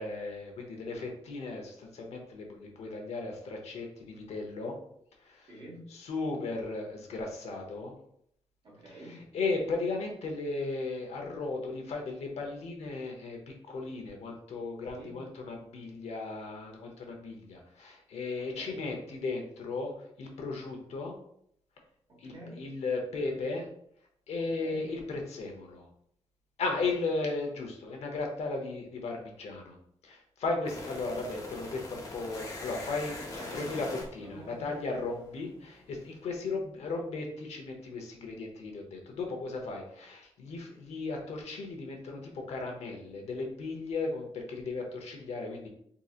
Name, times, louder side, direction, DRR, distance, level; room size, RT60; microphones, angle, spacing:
voice 1, 0.0-4.7 5.2-5.5 5.9-7.9 8.9-9.0 9.3-13.4 13.7-21.2 22.2-23.7 24.3-25.9 26.6-29.8 30.0-33.1 33.5-45.7, left 3 dB, 90° left, 2 dB, 0.8 m, -36 dB
voice 2, 5.4-5.9 8.6-9.3 14.9-15.2 18.4-18.9 22.1-22.7 24.4-24.9 33.2-33.8 34.1-34.8, right 1 dB, 50° right, -4 dB, 1.3 m, -48 dB
sound 1, 30.7-35.5, left 2 dB, 30° left, 0.6 m, -43 dB
3.8 x 2.8 x 2.4 m, 0.69 s
wide cardioid pair, 175°, 11 cm